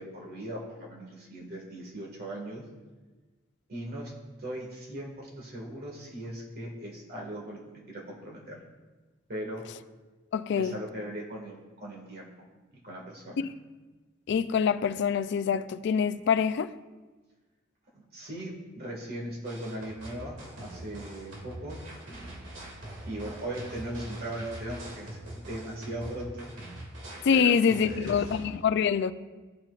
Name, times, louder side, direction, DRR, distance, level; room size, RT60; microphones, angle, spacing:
voice 1, 0.0-2.6 3.7-4.1 4.4-7.6 7.9-8.6 9.3-9.6 10.5-12.3 12.8-13.5 17.9-21.8 23.0-26.5 27.3-28.1, right 1 dB, 50° right, 1.8 m, -39 dB
voice 2, 10.3-10.8 13.4-13.5 14.3-16.7 27.2-29.1, left 6 dB, 60° left, 0.3 m, -25 dB
sound 1, 19.4-28.5, right 1 dB, 65° right, 2.0 m, -43 dB
14.5 x 5.9 x 2.4 m
head